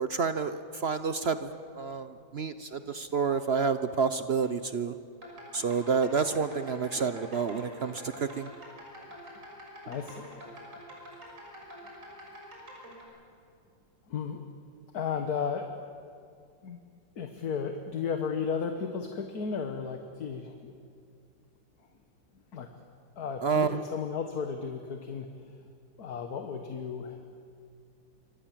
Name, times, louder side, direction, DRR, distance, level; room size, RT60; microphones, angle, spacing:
voice 1, 0.0-5.0 5.5-8.5 23.4-23.8, right 5 dB, 55° right, 11 dB, 0.7 m, -29 dB
sound 1, 5.1-13.0, equal, 40° right, 6.6 m, -47 dB
voice 2, 9.8-10.4 14.1-14.5 14.9-15.7 16.6-16.8 17.2-20.7 22.5-22.7 23.2-25.3 26.0-27.2, left 6 dB, 55° left, 6 dB, 1.8 m, -34 dB
27.5 x 24.5 x 7.5 m, 2.3 s
omnidirectional pair, 2.0 m